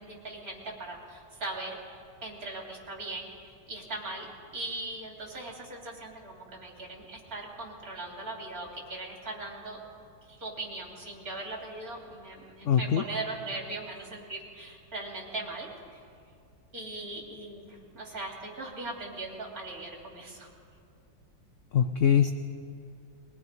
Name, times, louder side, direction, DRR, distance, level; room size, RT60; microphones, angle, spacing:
voice 1, 0.0-3.3 3.7-9.8 10.2-16.0 16.7-20.5, right 2 dB, 50° right, -1 dB, 4.0 m, -39 dB
voice 2, 12.6-13.0 21.7-22.3, left 8 dB, 75° left, 9 dB, 0.7 m, -23 dB
22.0 x 21.5 x 5.4 m, 2.5 s
omnidirectional pair, 2.0 m